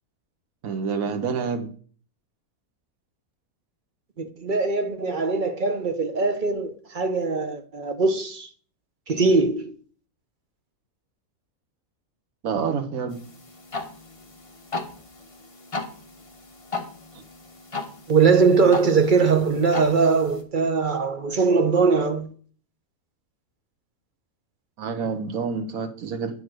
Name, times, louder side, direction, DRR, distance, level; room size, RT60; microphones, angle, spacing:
voice 1, 0.6-1.7 12.4-13.2 24.8-26.4, right 5 dB, 70° right, 1.5 m, -28 dB
voice 2, 4.2-8.5 9.1-9.7 18.1-22.3, right 4 dB, 40° right, 0.9 m, -21 dB
sound 1, 13.1-20.4, left 3 dB, 25° left, 1.1 m, -37 dB
8.7 x 4.8 x 6.2 m
omnidirectional pair, 1.5 m